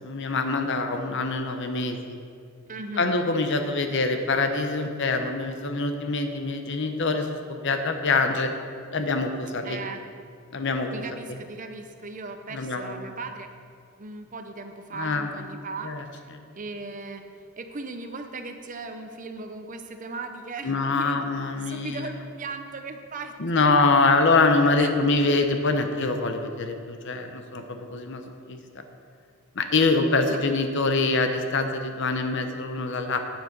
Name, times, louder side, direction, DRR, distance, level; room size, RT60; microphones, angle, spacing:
voice 1, 0.0-2.2 3.0-8.5 8.9-9.8 10.5-10.9 12.5-13.1 14.9-15.3 15.8-16.0 16.3-16.4 20.6-22.2 23.4-28.6 29.6-33.2, left 3 dB, 55° left, 6 dB, 0.8 m, -24 dB
voice 2, 2.7-3.1 9.6-10.0 10.9-13.5 14.0-15.9 16.6-17.2 17.6-21.2 21.6-23.3 24.8-25.0 30.3-30.4, right 3 dB, 35° right, 6 dB, 0.7 m, -37 dB
9.0 x 7.8 x 5.3 m, 2.2 s
head